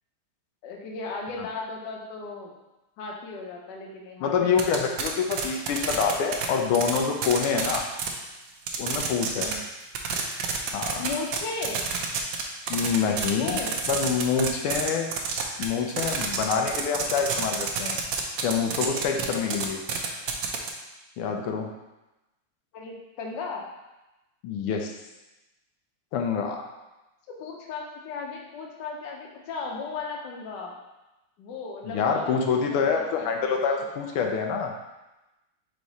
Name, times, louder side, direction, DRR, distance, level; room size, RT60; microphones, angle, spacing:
voice 1, 0.6-2.5 3.0-4.9 9.4-9.6 11.0-11.9 13.3-13.7 22.7-23.6 27.4-30.7 31.4-33.1 33.3-33.5, left 4 dB, 60° left, 0 dB, 1.4 m, -36 dB
voice 2, 4.2-7.8 8.8-9.5 10.7-11.0 12.7-13.6 13.9-15.1 15.6-18.0 18.4-19.8 21.2-21.7 24.4-24.9 26.1-26.6 31.9-34.7, left 6 dB, 85° left, 2 dB, 1.5 m, -26 dB
sound 1, 4.6-6.5 6.7-8.1 8.7-9.5 9.8-12.4 12.7-20.7, right 7 dB, 70° right, 1.2 m, -28 dB
5.0 x 4.6 x 4.0 m, 1.0 s
omnidirectional pair, 2.4 m